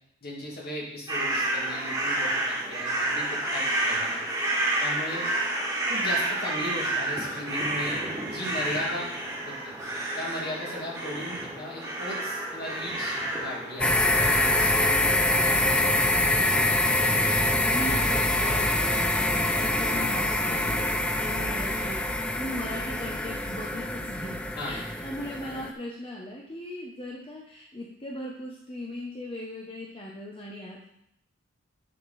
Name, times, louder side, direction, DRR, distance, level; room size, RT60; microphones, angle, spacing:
voice 1, 0.2-4.2 4.8-5.2 5.9-8.0 8.3-9.1 9.5-9.7 10.1-15.3 15.6-16.3 24.6-24.8, left 1 dB, 50° left, -3 dB, 2.4 m, -37 dB
sound 1, 1.1-18.7, right 1 dB, 15° right, 1.7 m, -31 dB
sound 2, 13.8-25.7, left 1 dB, 5° left, 0.4 m, -25 dB
voice 2, 17.7-30.9, left 1 dB, 25° left, -2 dB, 1.0 m, -38 dB
7.7 x 6.6 x 4.2 m, 0.74 s
head